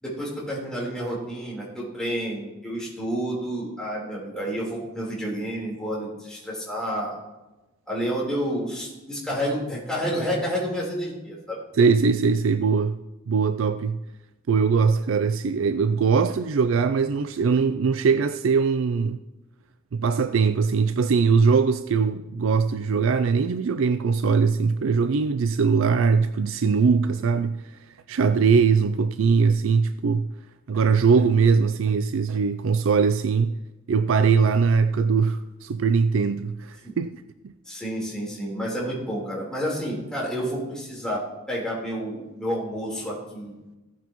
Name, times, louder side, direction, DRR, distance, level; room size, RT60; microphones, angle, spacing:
voice 1, 0.0-7.2 7.9-11.6 36.8-36.9 37.7-43.5, equal, 5° left, 3.8 m, -30 dB
voice 2, 11.8-13.0 13.3-14.0 14.5-19.2 19.9-27.6 28.1-30.3 30.7-33.5 33.9-37.2, right 5 dB, 70° right, 0.4 m, -21 dB
16.0 x 9.1 x 3.0 m
head